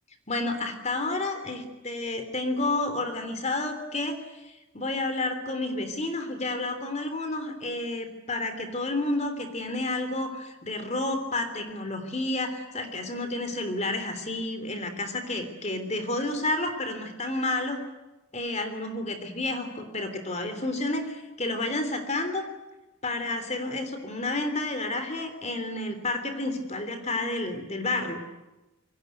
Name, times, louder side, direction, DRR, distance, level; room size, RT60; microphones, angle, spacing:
voice 1, 0.3-17.8 18.3-22.5 23.0-28.2, left 2 dB, 30° left, 8 dB, 3.4 m, -30 dB
28.0 x 23.0 x 8.1 m, 1.1 s
head